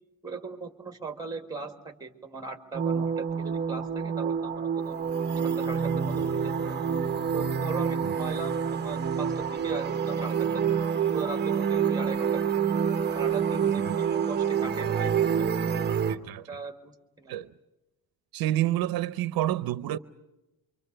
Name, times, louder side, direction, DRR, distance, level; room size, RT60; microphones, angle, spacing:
voice 1, 0.2-5.0 5.6-6.8 7.3-10.6 10.9-12.5 13.1-15.1 15.4-15.9 16.5-17.4, right 4 dB, 10° right, 1.9 m, -38 dB
sound 1, 2.7-16.2, right 7 dB, 30° right, 1.0 m, -27 dB
voice 2, 16.1-16.5 17.3-17.5 18.3-20.0, right 14 dB, 75° right, 0.8 m, -28 dB
27.0 x 24.5 x 6.7 m
cardioid pair, 175°, 36 cm